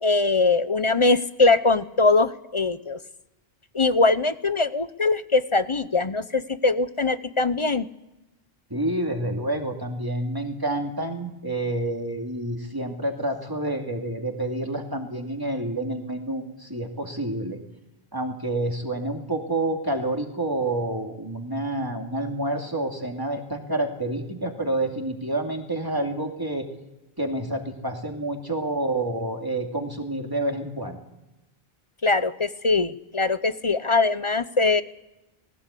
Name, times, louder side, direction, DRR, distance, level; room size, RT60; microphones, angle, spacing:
voice 1, 0.0-3.0 3.7-7.9 32.0-34.8, left 3 dB, 35° left, 13 dB, 0.7 m, -22 dB
voice 2, 8.7-17.6 18.1-26.7 27.2-31.0, right 1 dB, 20° right, 2 dB, 2.6 m, -28 dB
19.5 x 17.0 x 8.4 m, 0.99 s
omnidirectional pair, 1.0 m